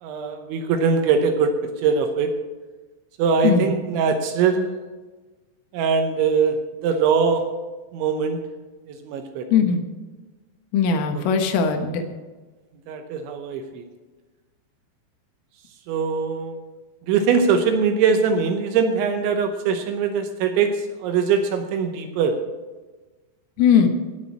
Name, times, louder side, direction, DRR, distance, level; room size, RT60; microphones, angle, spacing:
voice 1, 0.0-1.5 1.8-2.3 3.2-4.8 5.7-6.6 6.8-7.4 7.9-8.4 8.9-9.5 11.1-11.2 12.9-13.8 15.9-16.6 17.1-22.4, right 5 dB, 75° right, 5 dB, 3.0 m, -22 dB
voice 2, 9.5-9.8 10.7-12.0 23.6-23.9, left 6 dB, 80° left, 6 dB, 3.7 m, -19 dB
17.0 x 6.0 x 7.2 m, 1.3 s
omnidirectional pair, 5.9 m